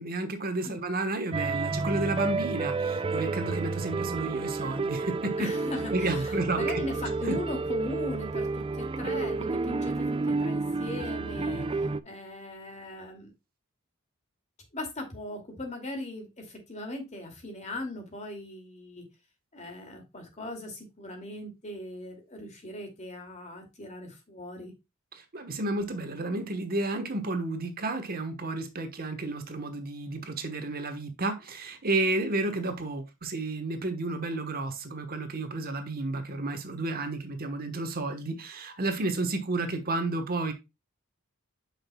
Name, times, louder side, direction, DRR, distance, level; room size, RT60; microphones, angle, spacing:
voice 1, 0.0-5.5 5.9-6.8 7.2-7.4 11.5-11.7 25.1-40.5, right 2 dB, 45° right, 1.2 m, -31 dB
sound 1, 1.3-12.0, right 3 dB, 25° right, 0.4 m, -30 dB
voice 2, 5.4-11.7 12.0-13.3 14.7-19.1 19.5-24.7, left 1 dB, 35° left, 2.4 m, -39 dB
8.7 x 5.9 x 2.3 m
head